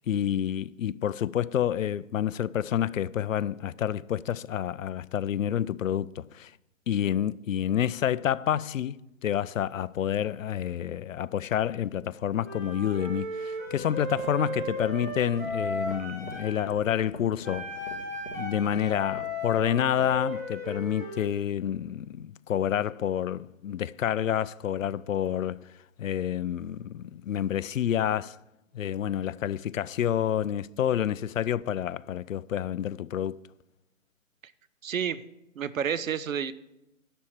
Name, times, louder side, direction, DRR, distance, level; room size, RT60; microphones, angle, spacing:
voice 1, 0.1-6.5 6.9-9.0 9.2-17.7 18.4-25.7 26.0-28.4 28.7-33.4, left 10 dB, 75° left, 0.5 m, -28 dB
Wind instrument woodwind instrument, 12.4-16.6 17.4-21.3, equal, 10° right, 0.8 m, -35 dB
sound 1, 13.6-20.2, left 4 dB, 45° left, 1.4 m, -45 dB
voice 2, 34.8-35.2 35.6-36.5, right 8 dB, 80° right, 0.7 m, -29 dB
11.5 x 4.4 x 7.5 m
hypercardioid pair, 175°, 40 cm